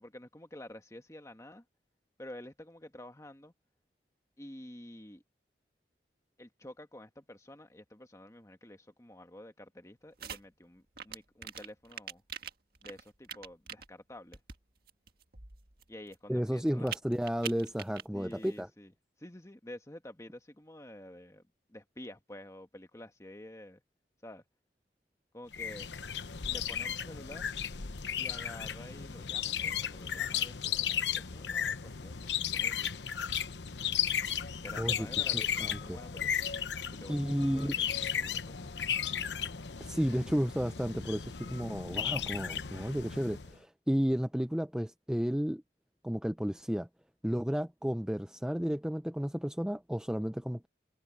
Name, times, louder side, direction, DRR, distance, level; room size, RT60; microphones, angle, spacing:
voice 1, 0.0-1.6 2.2-3.5 4.4-5.2 6.4-12.2 12.8-14.4 15.9-17.0 18.1-18.9 19.2-21.4 21.7-23.8 24.2-24.4 25.3-25.9 26.4-27.5 28.2-33.1 34.6-36.5 36.9-38.8, left 1 dB, 15° left, 1.4 m, -50 dB
sound 1, 10.2-10.4 11.0-13.9 14.3-14.6 14.9-16.2 16.7-18.0 18.3-18.5, right 8 dB, 55° right, 1.9 m, -43 dB
voice 2, 16.3-18.7 34.8-35.1 35.3-36.0 37.1-37.7 39.8-45.6 46.0-46.9 47.2-50.7, equal, 5° right, 0.6 m, -32 dB
sound 2, 25.5-43.5, left 9 dB, 90° left, 1.0 m, -35 dB
head